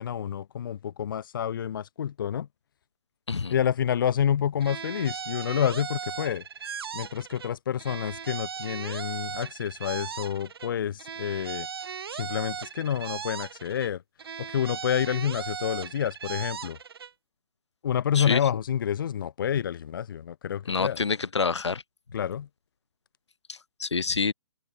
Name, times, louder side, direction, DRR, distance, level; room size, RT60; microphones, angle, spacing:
voice 1, 0.0-2.5 3.5-6.4 6.9-11.7 12.1-14.0 14.4-16.8 17.8-21.0 22.1-22.5, left 9 dB, 45° left, 1.1 m, -28 dB
sound 1, 4.6-7.5 7.8-10.7 11.0-13.9 14.2-17.1, right 7 dB, 55° right, 2.3 m, -37 dB
voice 2, 20.7-21.8 23.5-24.3, left 5 dB, 65° left, 1.1 m, -27 dB
open air
figure-of-eight pair, 130°, 15 cm